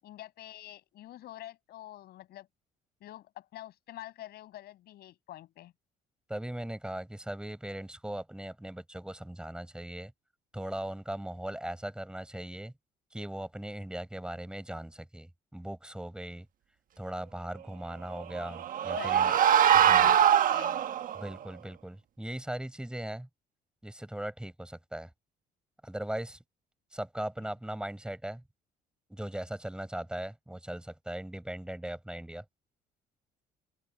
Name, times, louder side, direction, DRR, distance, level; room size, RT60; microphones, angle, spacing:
voice 1, 0.0-2.5 3.0-5.7 19.0-20.9 27.4-27.5, left 14 dB, 70° left, 7.1 m, -46 dB
voice 2, 6.3-10.1 10.5-12.7 13.1-16.5 17.0-19.3 19.7-20.1 21.2-23.3 23.8-25.1 25.8-26.4 26.9-28.4 29.1-32.4, right 1 dB, 5° right, 6.5 m, -39 dB
sound 1, 18.2-21.2, right 9 dB, 55° right, 1.3 m, -23 dB
open air
cardioid pair, 110°, 17 cm